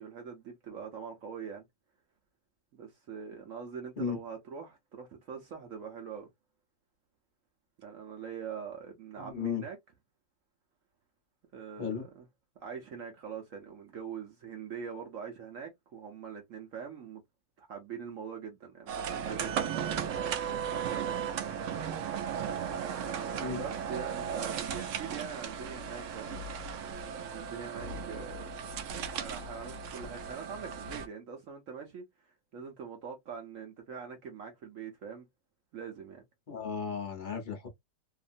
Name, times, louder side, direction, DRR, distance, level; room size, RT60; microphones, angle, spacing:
voice 1, 0.0-1.6 2.7-6.3 7.8-9.8 11.5-11.9 12.6-17.2 17.6-21.2 22.7-26.4 27.2-28.5 29.1-35.3 35.7-36.2, right 6 dB, 60° right, 0.9 m, -43 dB
voice 2, 9.2-9.6 11.8-12.0 23.4-23.6 36.5-37.7, left 6 dB, 45° left, 0.6 m, -35 dB
sound 1, 18.9-31.1, right 7 dB, 90° right, 0.6 m, -36 dB
2.8 x 2.5 x 2.4 m
omnidirectional pair, 1.9 m